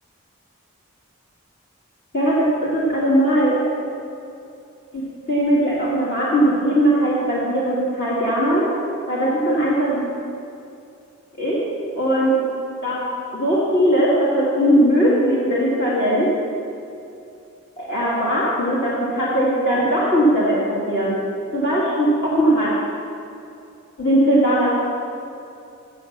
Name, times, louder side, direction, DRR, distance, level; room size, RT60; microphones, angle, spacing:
voice 1, 2.1-3.6 4.9-8.7 9.1-10.1 11.4-11.6 11.9-12.3 12.8-13.0 13.3-16.3 17.8-21.1 21.5-22.7 24.0-24.8, equal, 50° left, -7 dB, 1.7 m, -19 dB
7.6 x 6.7 x 7.1 m, 2.6 s
head